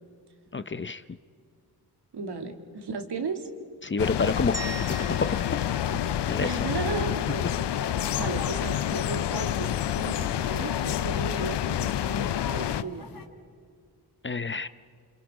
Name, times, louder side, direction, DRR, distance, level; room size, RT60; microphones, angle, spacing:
voice 1, 0.5-1.0 3.8-4.5 5.2-5.3 6.3-6.7 14.2-14.7, left 4 dB, 30° left, 13 dB, 0.7 m, -28 dB
voice 2, 2.1-3.5 6.4-7.5 8.2-13.0, right 4 dB, 70° right, 4 dB, 2.4 m, -35 dB
sound 1, 4.0-12.8, left 11 dB, 85° left, 0.6 m, -28 dB
sound 2, 4.5-6.8, right 4 dB, 10° right, 1.9 m, -41 dB
sound 3, 4.8-13.3, left 4 dB, 55° left, 2.3 m, -41 dB
29.0 x 26.0 x 4.9 m, 2.3 s
cardioid pair, 70°, 41 cm